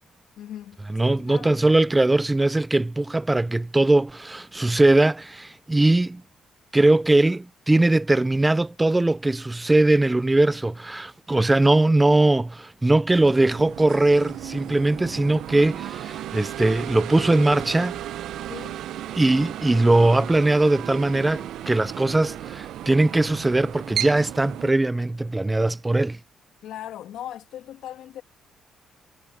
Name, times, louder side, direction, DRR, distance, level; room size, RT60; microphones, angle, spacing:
voice 1, 0.4-1.6 18.5-18.8 26.6-28.2, left 11 dB, 80° left, 2.4 m, -39 dB
voice 2, 0.9-6.2 6.7-18.0 19.2-26.2, right 2 dB, 15° right, 0.3 m, -20 dB
sound 1, 13.1-24.7, right 12 dB, 80° right, 0.6 m, -35 dB
cardioid pair, 90°, 0 cm